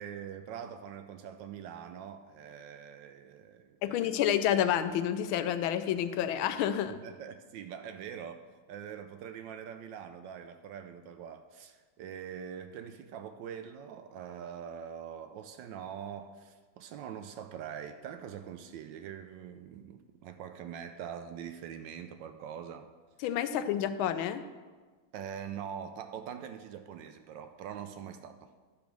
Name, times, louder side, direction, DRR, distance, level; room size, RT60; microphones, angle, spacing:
voice 1, 0.0-4.2 6.9-22.9 25.1-28.5, right 8 dB, 75° right, 8 dB, 1.2 m, -43 dB
voice 2, 3.8-6.9 23.2-24.4, left 10 dB, 85° left, 11 dB, 1.4 m, -29 dB
10.5 x 5.2 x 6.1 m, 1.4 s
omnidirectional pair, 2.2 m